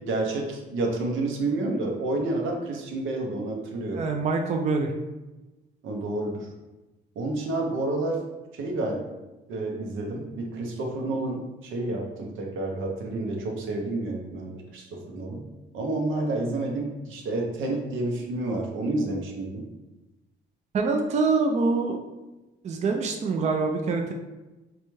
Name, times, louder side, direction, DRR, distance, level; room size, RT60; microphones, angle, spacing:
voice 1, 0.0-4.1 5.8-6.5 7.2-8.2 8.5-9.0 9.5-15.4 15.7-19.7, right 2 dB, 80° right, 1 dB, 0.7 m, -29 dB
voice 2, 3.9-4.9 20.7-22.0 22.6-24.1, right 4 dB, 35° right, 3 dB, 0.4 m, -25 dB
4.1 x 2.3 x 3.1 m, 1.1 s
cardioid pair, 90°, 20 cm